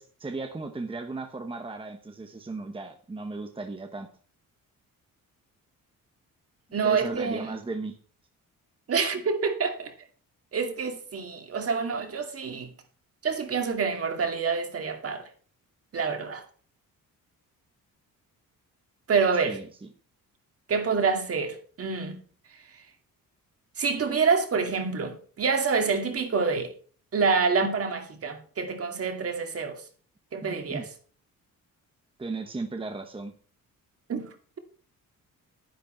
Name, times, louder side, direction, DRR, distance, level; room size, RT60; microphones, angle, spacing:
voice 1, 0.0-4.1 6.7-8.0 19.5-19.9 30.4-30.9 32.2-33.3, right 3 dB, 15° right, 1.1 m, -36 dB
voice 2, 6.7-7.5 8.9-9.9 10.5-12.7 13.2-15.3 15.9-16.4 19.1-19.6 20.7-22.2 23.8-26.7 27.1-29.8 30.3-30.9 34.1-34.3, right 5 dB, 40° right, 2.4 m, -27 dB
11.5 x 10.5 x 4.4 m
cardioid pair, 155°, 34 cm